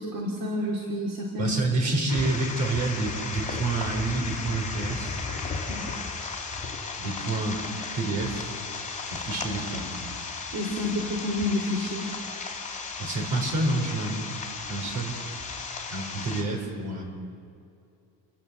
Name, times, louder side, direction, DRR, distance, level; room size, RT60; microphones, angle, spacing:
voice 1, 0.0-1.6 5.7-6.0 10.5-12.1, left 1 dB, 75° right, -3 dB, 3.6 m, -29 dB
voice 2, 1.4-5.2 7.0-7.6 7.9-8.5 9.1-10.0 13.0-14.3 14.7-15.2 15.9-17.0, right 2 dB, 55° right, 2 dB, 4.9 m, -28 dB
sound 1, 2.1-16.4, left 4 dB, 20° left, 3.2 m, -35 dB
29.5 x 11.5 x 7.8 m, 2.5 s
cardioid pair, 155°, 35 cm